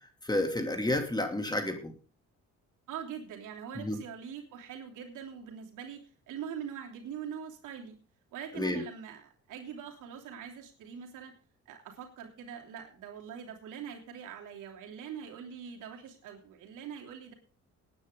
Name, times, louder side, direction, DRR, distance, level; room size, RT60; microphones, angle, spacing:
voice 1, 0.2-1.9 3.8-4.0 8.5-8.8, left 1 dB, 15° left, 5 dB, 2.7 m, -30 dB
voice 2, 2.9-8.0 8.3-11.3 11.6-17.3, right 8 dB, 85° right, 1 dB, 3.2 m, -43 dB
19.0 x 9.8 x 3.8 m, 0.37 s
cardioid pair, 90°, 30 cm